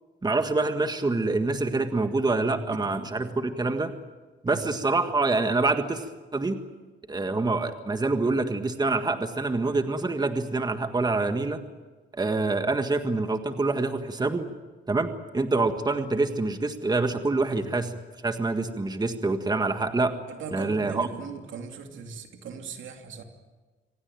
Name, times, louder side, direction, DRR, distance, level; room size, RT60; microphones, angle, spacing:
voice 1, 0.2-3.9 4.4-6.6 7.1-11.6 12.1-14.5 14.9-18.0 18.2-20.1 20.5-21.1, right 3 dB, 20° right, 8 dB, 1.7 m, -26 dB
voice 2, 2.5-3.5 4.5-4.6 17.5-17.7 20.3-23.2, right 5 dB, 75° right, 5 dB, 2.9 m, -40 dB
26.0 x 17.5 x 9.2 m, 1.3 s
cardioid pair, 90°, 20 cm